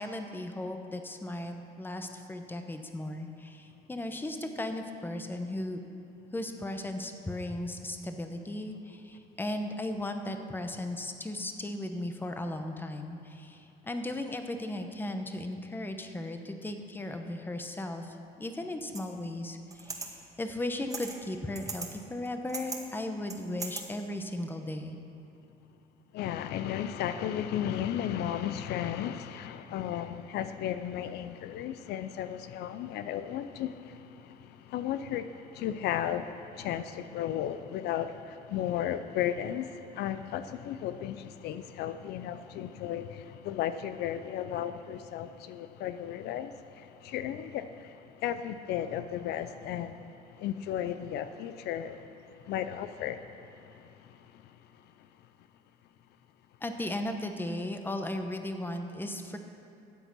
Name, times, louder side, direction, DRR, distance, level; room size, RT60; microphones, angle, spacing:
voice 1, 0.0-5.8 6.3-25.0 56.6-59.4, left 1 dB, 10° left, 6 dB, 0.9 m, -36 dB
sound 1, 19.0-19.1 19.7-20.1 20.9-21.2 21.6-21.9 22.3-22.8 23.3-23.8, right 3 dB, 20° right, 1.4 m, -38 dB
voice 2, 26.1-50.0 50.4-52.1 52.4-53.5 53.7-54.2, left 10 dB, 75° left, 11 dB, 0.5 m, -34 dB
12.5 x 8.0 x 6.2 m, 2.6 s
cardioid pair, 110°, 17 cm